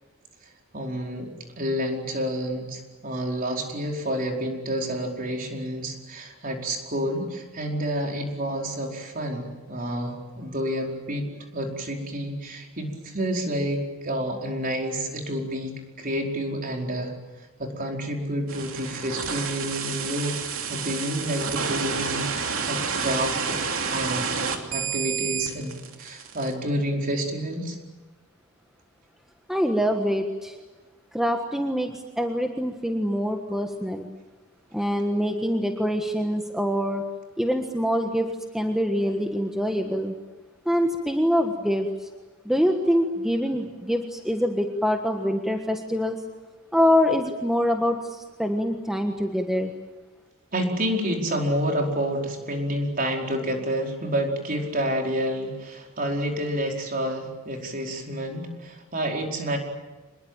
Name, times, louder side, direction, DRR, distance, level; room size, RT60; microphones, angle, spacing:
voice 1, 0.7-17.1 17.6-23.6 23.9-24.3 24.7-27.8 50.5-59.6, equal, 40° right, 1 dB, 4.9 m, -29 dB
sound 1, 18.5-26.5, right 6 dB, 70° right, 3.0 m, -29 dB
voice 2, 29.5-30.6 31.1-34.1 34.7-37.0 37.4-38.3 38.5-40.1 40.6-42.1 42.4-46.2 46.7-49.7, equal, ahead, 3 dB, 1.5 m, -25 dB
26.5 x 21.5 x 9.0 m, 1.2 s
head